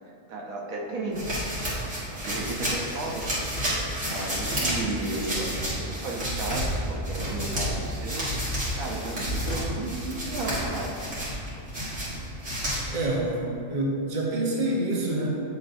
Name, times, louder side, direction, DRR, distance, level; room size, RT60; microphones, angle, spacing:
voice 1, 0.3-1.2 2.1-3.3 4.1-8.3 8.8-11.2, right 2 dB, 85° right, -2 dB, 1.4 m, -34 dB
sound 1, 1.1-13.0, equal, 60° right, 2.3 m, -30 dB
voice 2, 12.9-15.3, right 1 dB, 40° right, -3 dB, 1.1 m, -27 dB
8.6 x 6.9 x 2.7 m, 2.5 s
omnidirectional pair, 1.4 m